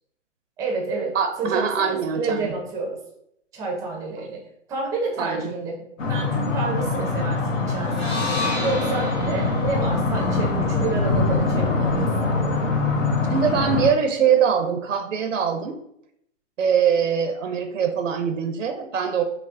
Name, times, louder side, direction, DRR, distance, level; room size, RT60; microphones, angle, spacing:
voice 1, 0.6-3.0 3.5-4.4 4.7-5.7 6.1-8.1 8.6-12.3, right 3 dB, 10° right, -1 dB, 0.4 m, -29 dB
voice 2, 1.1-2.5 5.2-5.5 13.3-15.8 16.6-19.2, right 7 dB, 90° right, 6 dB, 0.5 m, -22 dB
sound 1, 6.0-13.9, left 3 dB, 85° left, 0.8 m, -23 dB
sound 2, 7.9-12.1, left 3 dB, 60° left, 1.2 m, -34 dB
5.5 x 2.0 x 2.4 m, 0.75 s
hypercardioid pair, 120°, 37 cm